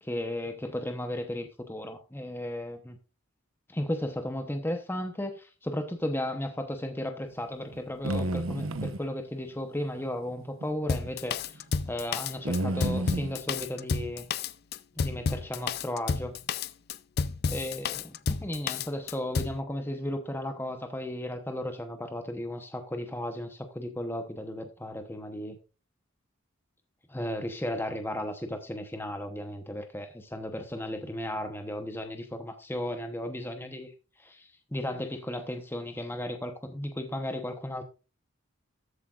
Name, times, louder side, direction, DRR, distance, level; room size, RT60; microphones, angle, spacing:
voice 1, 0.0-3.0 3.7-11.6 11.9-14.2 15.0-16.3 17.5-18.0 18.4-25.6 27.1-33.9 34.2-37.8, left 1 dB, 10° left, 0.9 m, -35 dB
sound 1, 7.7-9.1 10.4-10.7 11.1-11.2 12.5-13.4, right 1 dB, 75° right, 1.0 m, -30 dB
Drum kit, 10.9-19.6, left 5 dB, 50° left, 0.4 m, -31 dB
13.5 x 8.2 x 2.5 m
head